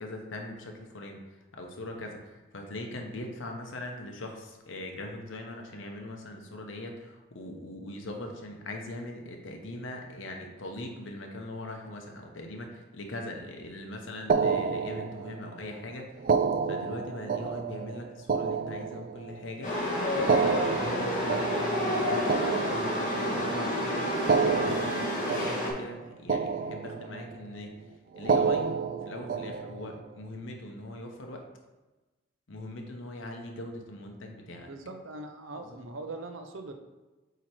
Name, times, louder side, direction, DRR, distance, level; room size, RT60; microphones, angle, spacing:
voice 1, 0.0-19.8 20.1-27.8 28.1-28.7 29.0-31.4 32.5-34.7 35.6-35.8, left 1 dB, 80° left, 2 dB, 1.0 m, -41 dB
sound 1, 14.3-15.5 16.2-19.5 20.2-23.5 24.2-26.0 26.3-27.4 28.2-30.0, right 5 dB, 45° right, 0.3 m, -29 dB
Chatter / Subway metro underground, 19.6-25.7, left 1 dB, 40° left, 1.6 m, -29 dB
voice 2, 34.7-36.7, right 2 dB, 85° right, 5 dB, 0.7 m, -41 dB
8.0 x 3.0 x 4.5 m, 1.2 s
head